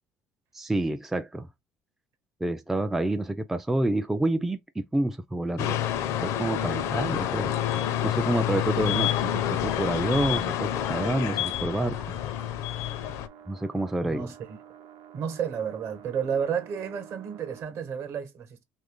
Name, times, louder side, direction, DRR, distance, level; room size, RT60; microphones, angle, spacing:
voice 1, 0.5-1.5 2.4-5.8 6.2-7.5 8.0-12.0 13.5-14.3, right 1 dB, 5° right, 0.3 m, -28 dB
sound 1, 5.6-13.3, left 11 dB, 65° left, 0.5 m, -28 dB
sound 2, 10.6-17.6, right 8 dB, 85° right, 0.9 m, -50 dB
voice 2, 14.0-14.6 15.1-18.6, right 7 dB, 55° right, 1.0 m, -31 dB
2.9 x 2.5 x 3.6 m
supercardioid pair, 105°, 5 cm